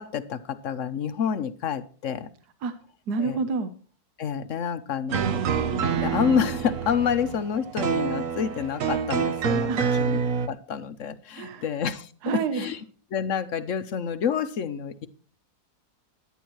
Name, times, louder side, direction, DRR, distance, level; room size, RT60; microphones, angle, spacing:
voice 1, 0.0-2.3 3.2-3.4 4.2-5.4 6.0-10.2 10.5-12.1 12.5-12.8 13.1-15.1, left 7 dB, 60° left, 12 dB, 1.0 m, -28 dB
voice 2, 3.1-3.7 9.7-10.1 11.3-11.6 12.2-12.7, right 5 dB, 80° right, 10 dB, 1.5 m, -28 dB
sound 1, 5.1-10.5, right 6 dB, 60° right, 1.1 m, -27 dB
17.5 x 11.0 x 3.1 m, 0.40 s
omnidirectional pair, 1.7 m